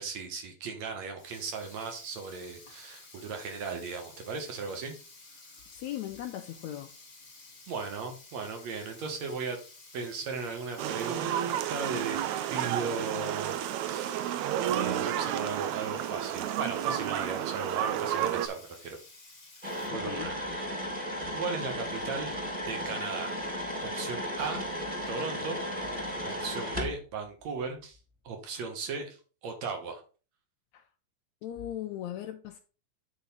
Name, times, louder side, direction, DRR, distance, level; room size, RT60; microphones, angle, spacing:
voice 1, 0.0-5.0 7.7-9.6 9.9-12.2 12.5-19.0 19.9-20.4 21.3-22.4 22.7-23.4 23.8-24.6 25.1-25.6 26.2-28.0 28.2-30.0, right 4 dB, 60° right, 4 dB, 2.4 m, -37 dB
Sink (filling or washing), 1.2-19.9, left 3 dB, 55° left, 0.4 m, -53 dB
voice 2, 5.7-6.9 20.0-20.3 30.7-30.8 31.4-32.6, left 12 dB, 85° left, 5 dB, 1.6 m, -38 dB
sound 1, 10.8-18.5, right 11 dB, 85° right, 1.7 m, -31 dB
sound 2, 19.6-26.9, equal, 10° right, 1.7 m, -35 dB
8.8 x 4.1 x 5.3 m, 0.36 s
omnidirectional pair, 4.0 m